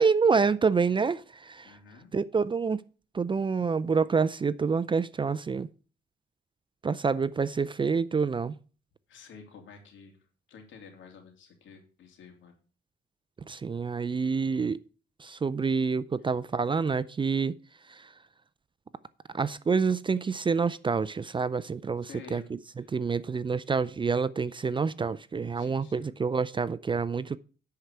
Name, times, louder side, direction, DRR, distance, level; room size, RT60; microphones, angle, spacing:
voice 1, 0.0-1.7 2.1-2.8 3.1-5.7 6.8-8.6 13.5-14.8 15.2-17.5 17.9-18.0 19.3-22.4 22.9-27.4, right 5 dB, 25° right, 0.4 m, -27 dB
voice 2, 1.6-2.1 9.1-10.2 10.5-12.5 22.1-22.5 22.8-23.0 25.5-26.2, left 6 dB, 75° left, 3.0 m, -50 dB
10.5 x 4.7 x 6.6 m
cardioid pair, 90°, 20 cm